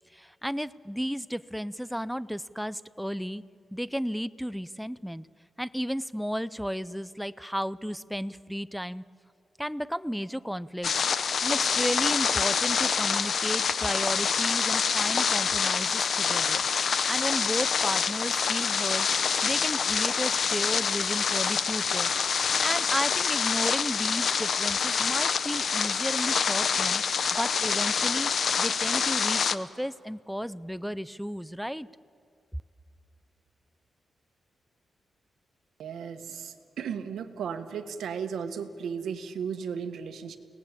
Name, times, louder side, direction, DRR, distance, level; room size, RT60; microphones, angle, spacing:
voice 1, 0.1-3.4 3.7-5.3 5.6-9.0 9.6-10.9 11.4-19.1 19.4-27.0 27.3-28.3 28.6-31.9, equal, ahead, 16 dB, 0.5 m, -33 dB
sound 1, 10.8-29.6, left 6 dB, 60° left, 0.8 m, -26 dB
voice 2, 35.8-40.4, right 7 dB, 85° right, 8 dB, 1.6 m, -35 dB
29.5 x 19.0 x 8.4 m, 2.3 s
cardioid pair, 115°, 0 cm